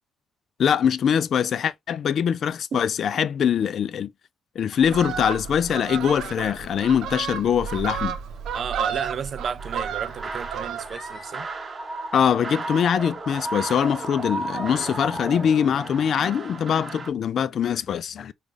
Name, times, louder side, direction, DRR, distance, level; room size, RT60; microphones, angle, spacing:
voice 1, 0.6-4.1 4.6-8.2 12.1-18.3, left 8 dB, 60° left, 0.3 m, -23 dB
sound 1, 4.7-5.3 5.9-6.3 6.7-7.1 8.0-8.4 9.5-9.6 10.5-11.5 11.9-12.3 12.9-13.0 13.6-13.9 14.3-15.5, left 1 dB, 5° left, 2.7 m, -48 dB
Fowl, 4.8-11.1 11.5-11.7, right 7 dB, 75° right, 0.7 m, -32 dB
voice 2, 8.5-11.5, right 7 dB, 55° right, 0.3 m, -32 dB
sound 2, 9.6-17.1, right 3 dB, 35° right, 0.8 m, -34 dB
5.1 x 2.4 x 3.2 m
cardioid pair, 90°, 0 cm